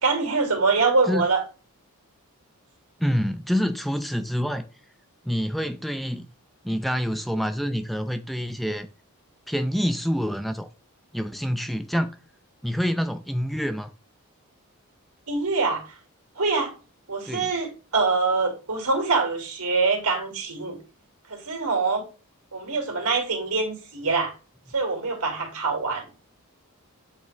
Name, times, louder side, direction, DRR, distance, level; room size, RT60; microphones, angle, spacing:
voice 1, 0.0-1.4 15.3-15.8 16.4-16.7 17.1-20.8 21.3-22.0 22.5-24.3 24.7-26.1, right 4 dB, 90° right, 2.3 m, -24 dB
voice 2, 3.0-4.6 5.3-6.3 6.6-8.9 9.5-10.7 11.1-12.2 12.6-13.9 17.3-17.5, equal, ahead, 0.3 m, -27 dB
8.5 x 3.6 x 3.3 m
head